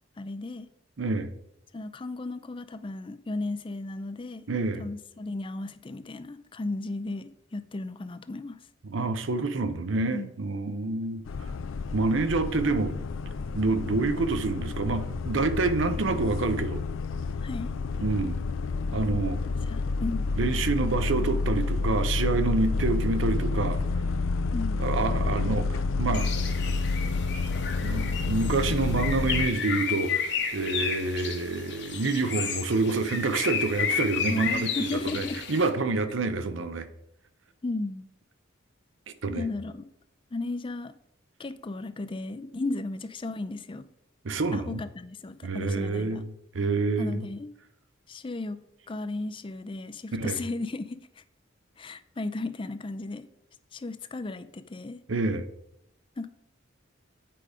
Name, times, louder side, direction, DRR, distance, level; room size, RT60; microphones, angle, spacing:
voice 1, 0.2-0.7 1.7-4.5 4.8-8.6 10.0-10.3 17.4-17.7 19.5-20.3 24.5-24.8 34.3-35.4 37.6-38.1 39.3-39.9 40.3-40.9 41.4-43.9 44.5-46.2 47.0-47.5 48.1-51.2 51.8-53.2 53.7-55.0 56.2-56.3, left 2 dB, 25° left, 0.4 m, -35 dB
voice 2, 1.0-1.3 4.5-4.9 8.8-11.2 11.9-13.0 13.5-16.8 18.0-18.4 18.9-19.4 20.4-23.8 24.8-26.3 27.6-36.9 39.2-39.5 44.2-44.8 45.4-47.3 50.1-50.4 55.1-55.5, right 3 dB, 70° right, 0.7 m, -27 dB
sound 1, 11.3-29.5, left 3 dB, 85° left, 0.4 m, -29 dB
Bird, 26.1-35.7, left 6 dB, 60° left, 1.1 m, -32 dB
8.7 x 4.9 x 5.0 m
head